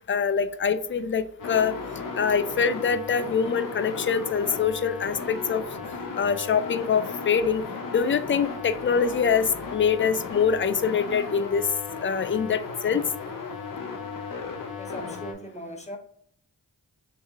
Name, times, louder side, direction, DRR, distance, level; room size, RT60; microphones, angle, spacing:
voice 1, 0.1-1.7 2.2-5.6 6.2-7.6 7.9-11.7 12.0-13.1, left 6 dB, 35° left, 11 dB, 0.4 m, -24 dB
sound 1, 1.4-15.3, left 4 dB, 55° left, 0.8 m, -35 dB
voice 2, 14.8-16.0, equal, 20° left, 4 dB, 0.9 m, -39 dB
3.2 x 2.7 x 3.6 m, 0.63 s
cardioid pair, 40°, 38 cm